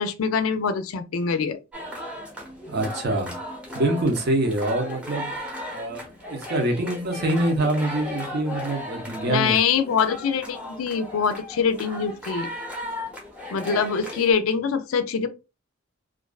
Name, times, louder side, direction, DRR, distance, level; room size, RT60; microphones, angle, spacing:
voice 1, 0.0-1.6 9.3-12.5 13.5-15.3, left 6 dB, 70° left, 0.4 m, -24 dB
sound 1, 1.7-14.3, left 1 dB, 5° right, 0.8 m, -36 dB
voice 2, 2.7-3.3 3.7-5.3 5.7-9.6, right 1 dB, 50° right, 0.7 m, -25 dB
2.4 x 2.3 x 2.3 m
head